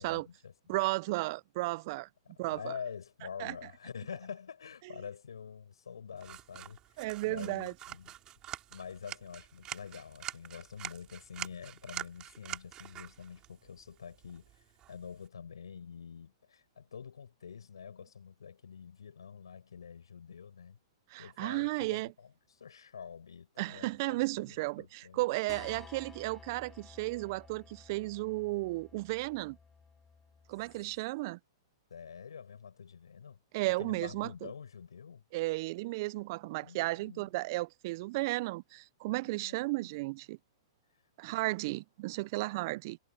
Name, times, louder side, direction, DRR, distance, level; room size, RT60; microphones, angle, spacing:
voice 1, 0.0-0.5 2.2-8.1 8.7-20.8 21.2-25.2 25.5-25.8 31.9-33.4 33.7-35.2 36.6-37.3 39.2-39.9, left 7 dB, 85° left, 6.7 m, -47 dB
voice 2, 0.7-2.1 2.4-2.7 3.4-3.5 7.0-7.7 21.1-22.1 23.6-29.6 30.5-31.4 33.5-34.5 35.3-40.4 41.2-43.0, right 21 dB, 50° right, 0.4 m, -34 dB
sound 1, 6.2-15.3, right 13 dB, 30° right, 5.3 m, -46 dB
sound 2, 25.5-30.9, left 5 dB, 10° left, 6.2 m, -54 dB
hypercardioid pair, 125°, 2 cm